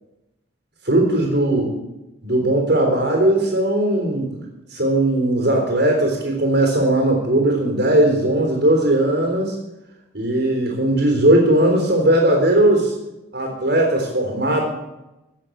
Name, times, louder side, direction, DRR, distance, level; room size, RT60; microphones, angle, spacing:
voice 1, 0.8-1.7 2.2-4.3 4.7-9.5 10.1-12.9 13.3-14.6, right 1 dB, 60° right, 0 dB, 3.7 m, -18 dB
15.5 x 7.6 x 7.8 m, 0.96 s
head